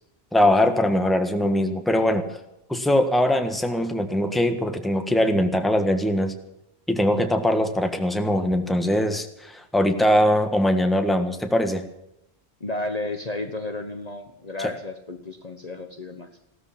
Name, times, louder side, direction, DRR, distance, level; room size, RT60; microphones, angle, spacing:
voice 1, 0.3-2.2 2.7-6.3 6.9-11.8 14.6-14.7, left 1 dB, ahead, 6 dB, 1.4 m, -21 dB
voice 2, 12.6-16.3, left 2 dB, 35° left, 6 dB, 1.2 m, -32 dB
16.5 x 13.5 x 5.9 m, 0.84 s
omnidirectional pair, 1.1 m